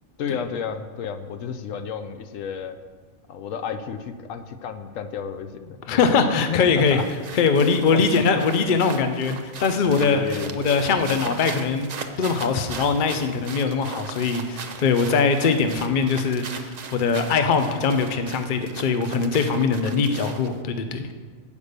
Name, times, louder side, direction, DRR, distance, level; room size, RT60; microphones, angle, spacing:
voice 1, 0.2-2.8 3.3-7.1 7.5-8.0 8.4-8.5 10.1-10.8, left 7 dB, 80° left, 9 dB, 1.0 m, -32 dB
voice 2, 5.9-7.0 7.3-10.2 10.5-11.9 12.2-21.1, left 5 dB, 50° left, 7 dB, 0.7 m, -22 dB
sound 1, 6.5-20.6, right 5 dB, 50° right, 0.5 m, -39 dB
8.2 x 5.2 x 6.5 m, 1.4 s
omnidirectional pair, 1.3 m